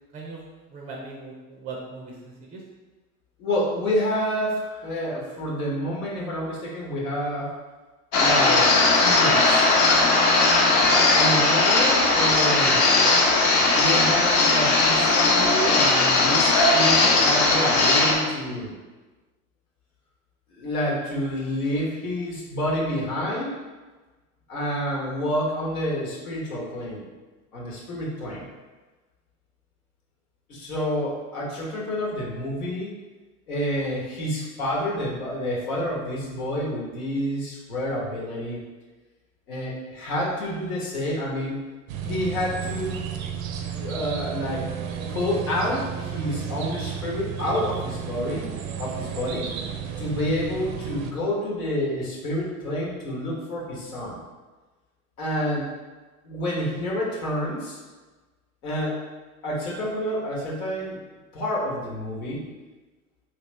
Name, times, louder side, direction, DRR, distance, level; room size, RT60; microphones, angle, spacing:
voice 1, 0.1-0.4 0.7-2.6, right 3 dB, 20° right, -1 dB, 0.4 m, -39 dB
voice 2, 3.4-7.5 8.2-8.7 8.9-9.6 11.1-12.8 13.7-18.7 20.5-23.5 24.5-27.0 27.5-28.5 30.5-32.9 33.5-38.6 39.5-41.6 42.0-43.0 43.8-44.7 45.1-48.5 48.8-49.5 50.0-54.2 55.2-55.7 56.2-57.8 58.6-59.0 59.4-61.0 61.3-62.4, equal, 85° left, -4 dB, 1.2 m, -28 dB
sound 1, 8.1-18.2, left 2 dB, 45° left, 0.8 m, -18 dB
sound 2, 41.9-51.1, right 8 dB, 70° right, 0.5 m, -33 dB
3.1 x 2.8 x 3.1 m, 1.3 s
hypercardioid pair, 90°, 42 cm